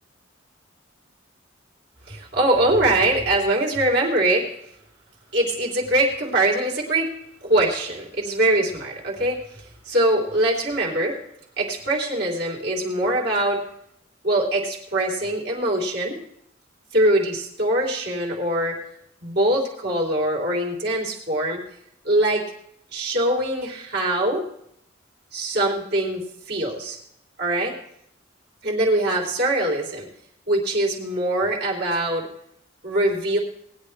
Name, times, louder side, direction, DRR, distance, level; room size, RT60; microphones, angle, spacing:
voice 1, 2.1-4.5 5.3-7.1 7.4-9.4 9.8-11.2 11.6-13.6 14.2-16.2 16.9-18.8 19.2-21.6 22.0-22.5 22.9-24.4 25.3-27.0 27.4-27.7 28.6-30.1 30.5-32.3 32.8-33.4, right 1 dB, 55° right, -2 dB, 3.3 m, -22 dB
20.0 x 10.0 x 3.3 m, 0.73 s
head